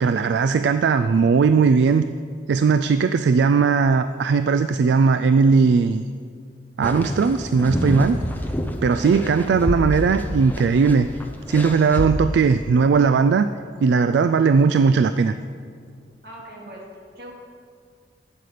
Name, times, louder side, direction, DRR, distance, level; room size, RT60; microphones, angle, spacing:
voice 1, 0.0-2.0 2.5-6.0 6.8-8.2 8.8-11.1 11.5-13.5 13.8-15.3, right 5 dB, 80° right, 11 dB, 0.3 m, -18 dB
sound 1, 6.8-12.1, equal, 10° left, 0.6 m, -28 dB
voice 2, 16.2-17.3, equal, 60° right, -2 dB, 2.2 m, -40 dB
11.5 x 8.3 x 5.0 m, 2.2 s
head